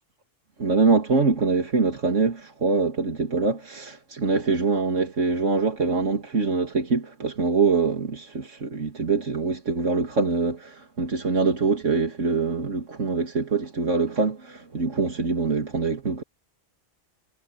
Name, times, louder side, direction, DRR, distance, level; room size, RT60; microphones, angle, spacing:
voice 1, 0.6-16.2, right 4 dB, 85° right, 2.8 m, -24 dB
omnidirectional pair, 1.2 m